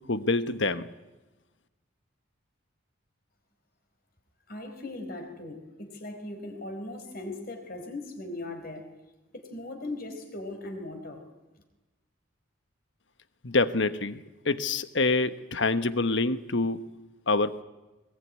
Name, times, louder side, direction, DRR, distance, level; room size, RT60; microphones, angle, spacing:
voice 1, 0.1-0.9 13.4-16.8 17.3-17.6, left 3 dB, 65° left, 12 dB, 1.2 m, -26 dB
voice 2, 4.5-8.9 9.3-11.2, left 2 dB, 45° left, 5 dB, 4.5 m, -39 dB
21.5 x 21.5 x 9.6 m, 1.1 s
head